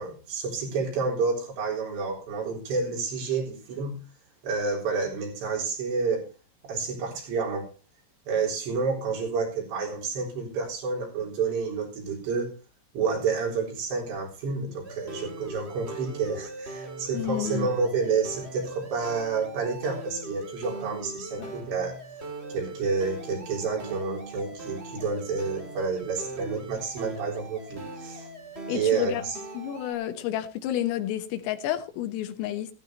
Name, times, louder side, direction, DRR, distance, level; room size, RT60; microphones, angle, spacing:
voice 1, 0.0-4.0 4.4-6.3 6.6-7.7 8.3-12.5 12.9-22.0 22.5-28.3 28.7-29.4, right 5 dB, 60° right, 5.9 m, -29 dB
sound 1, 14.8-29.9, right 2 dB, 85° right, 0.5 m, -40 dB
voice 2, 17.1-17.7 21.4-21.5 28.7-29.2 29.6-32.7, left 12 dB, 85° left, 3.9 m, -30 dB
15.5 x 15.0 x 2.8 m
omnidirectional pair, 5.8 m